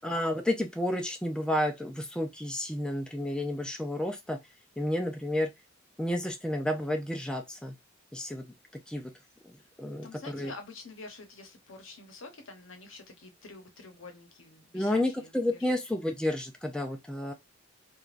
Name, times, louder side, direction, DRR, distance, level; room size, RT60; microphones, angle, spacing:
voice 1, 0.0-4.4 4.8-5.5 6.0-7.7 8.1-8.4 8.9-9.1 9.8-10.1 10.3-10.5 14.7-17.3, left 1 dB, 5° left, 0.4 m, -31 dB
voice 2, 10.0-15.7, left 3 dB, 75° left, 0.8 m, -47 dB
3.2 x 2.3 x 2.4 m
head